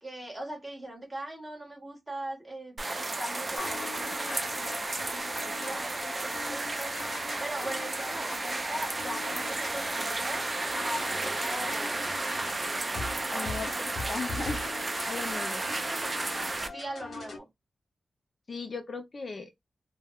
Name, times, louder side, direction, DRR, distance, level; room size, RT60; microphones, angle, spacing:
voice 1, 0.0-7.0 7.4-12.0 13.4-14.3 15.3-16.1 16.7-17.5, right 1 dB, 10° right, 1.4 m, -41 dB
sound 1, 2.8-16.7, right 2 dB, 30° right, 0.4 m, -33 dB
sound 2, 3.5-17.4, left 3 dB, 90° left, 0.8 m, -42 dB
voice 2, 13.3-14.6 15.0-15.6 18.5-19.5, left 4 dB, 45° left, 0.4 m, -37 dB
3.4 x 2.1 x 2.2 m
wide cardioid pair, 135°, 0 cm